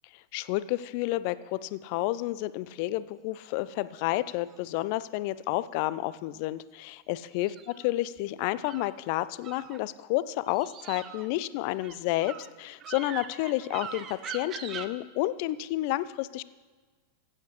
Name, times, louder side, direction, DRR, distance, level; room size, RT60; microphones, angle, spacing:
voice 1, 0.3-7.5 7.8-16.4, left 16 dB, 45° left, 17 dB, 0.3 m, -30 dB
sound 1, 3.6-4.6 7.3-8.9 9.4-10.1 10.4-14.9, right 8 dB, 30° right, 0.6 m, -43 dB
16.0 x 8.6 x 3.2 m, 1.4 s
figure-of-eight pair, 90°, 0 cm